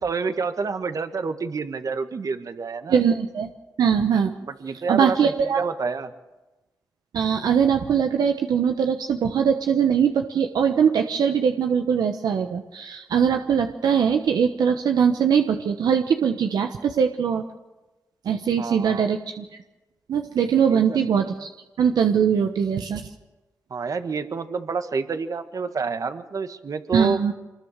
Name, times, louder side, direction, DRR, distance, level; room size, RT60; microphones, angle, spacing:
voice 1, 0.0-3.0 4.4-6.1 18.6-19.1 20.7-21.0 23.7-27.2, right 5 dB, 55° right, 9 dB, 1.7 m, -28 dB
voice 2, 2.9-3.5 3.8-4.3 4.9-5.6 7.1-17.4 18.2-19.4 20.1-21.5 21.8-23.0 26.9-27.3, right 7 dB, 80° right, 5 dB, 1.1 m, -21 dB
24.0 x 21.0 x 6.6 m, 1.1 s
cardioid pair, 60°, 7 cm